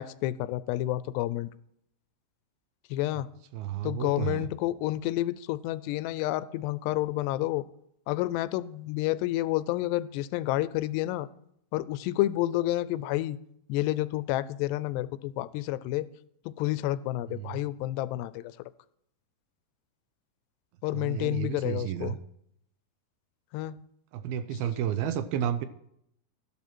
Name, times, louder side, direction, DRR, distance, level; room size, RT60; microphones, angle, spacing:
voice 1, 0.0-1.5 2.9-3.3 3.8-7.6 8.1-11.3 11.7-13.4 13.7-16.1 16.5-18.6 20.8-22.2 23.5-23.8, left 16 dB, 90° left, 16 dB, 2.7 m, -29 dB
voice 2, 3.5-4.5 17.3-17.6 20.9-22.2 24.1-25.7, right 10 dB, 80° right, 11 dB, 2.4 m, -32 dB
13.5 x 11.0 x 4.5 m, 0.74 s
omnidirectional pair, 4.8 m